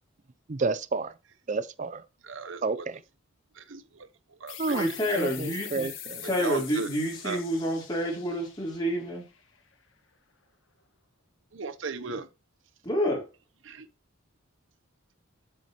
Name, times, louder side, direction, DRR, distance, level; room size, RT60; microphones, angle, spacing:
voice 1, 0.5-1.1 1.5-2.0 2.6-3.0 4.6-6.2, right 3 dB, 40° right, 0.5 m, -30 dB
voice 2, 2.2-2.9 3.5-5.2 6.2-6.9 7.2-7.4 11.5-12.3 13.6-13.9, right 4 dB, 70° right, 0.8 m, -37 dB
sound 1, 4.5-9.7, left 10 dB, 75° left, 1.5 m, -44 dB
voice 3, 4.7-5.9 6.2-9.2 12.8-13.2, equal, 20° left, 3.6 m, -28 dB
8.2 x 6.4 x 3.0 m
head